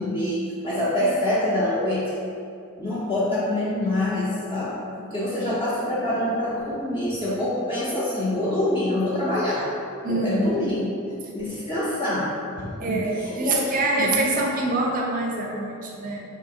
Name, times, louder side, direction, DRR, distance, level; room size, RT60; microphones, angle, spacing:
voice 1, 0.0-2.1 2.8-9.6 10.1-10.9 11.3-12.3 12.6-13.6 14.0-14.1, left 1 dB, 25° left, -10 dB, 0.5 m, -25 dB
voice 2, 10.0-10.7 11.2-11.3 12.8-16.2, right 2 dB, 40° right, -1 dB, 0.5 m, -25 dB
2.7 x 2.6 x 3.7 m, 2.5 s
head